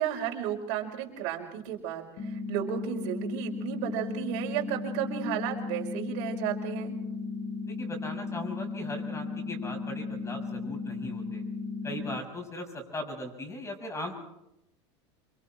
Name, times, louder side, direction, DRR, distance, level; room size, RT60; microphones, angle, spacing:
voice 1, 0.0-6.9, right 10 dB, 65° right, 1 dB, 4.9 m, -33 dB
sound 1, 2.2-12.2, left 4 dB, 45° left, 2.6 m, -35 dB
voice 2, 7.7-11.4 11.8-14.1, left 1 dB, 20° left, 4 dB, 6.4 m, -38 dB
27.0 x 23.5 x 4.5 m, 0.85 s
hypercardioid pair, 105°, 15 cm